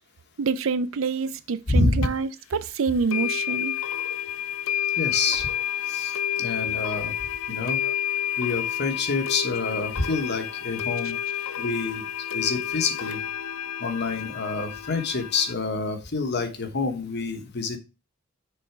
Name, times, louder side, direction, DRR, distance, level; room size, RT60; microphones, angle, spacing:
voice 1, 0.4-3.8 7.8-7.9, right 5 dB, 75° right, 0.5 m, -27 dB
voice 2, 1.7-2.1 5.0-5.5 5.9-7.1 7.5-7.8 8.4-11.1 11.6-12.0 12.3-13.2 13.8-17.8, left 3 dB, 55° left, 1.1 m, -27 dB
sound 1, 2.0-2.1 3.1-15.5, left 10 dB, 85° left, 0.5 m, -30 dB
6.6 x 3.8 x 4.6 m
head